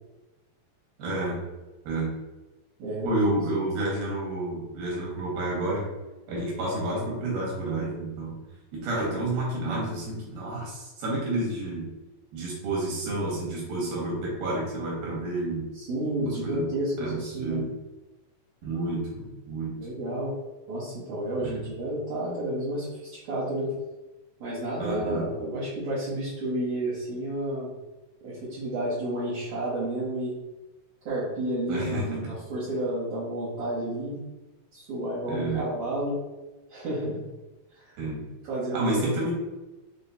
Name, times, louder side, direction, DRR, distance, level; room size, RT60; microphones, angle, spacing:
voice 1, 1.0-1.4 1.8-2.1 3.0-5.9 6.3-8.4 8.7-11.9 12.3-15.7 16.2-16.7 17.0-17.7 18.6-19.8 21.4-21.7 24.8-25.3 31.7-32.2 35.3-35.7 38.0-38.3 38.7-39.3, right 2 dB, 90° right, -4 dB, 3.1 m, -30 dB
voice 2, 2.8-3.2 15.8-17.6 19.8-20.3 20.7-23.7 24.4-27.7 28.2-30.3 31.1-34.2 34.7-36.2 36.7-37.2 37.8-38.0 38.5-39.1, right 1 dB, 65° right, -11 dB, 2.1 m, -31 dB
6.6 x 2.3 x 2.7 m, 1.1 s
omnidirectional pair, 4.1 m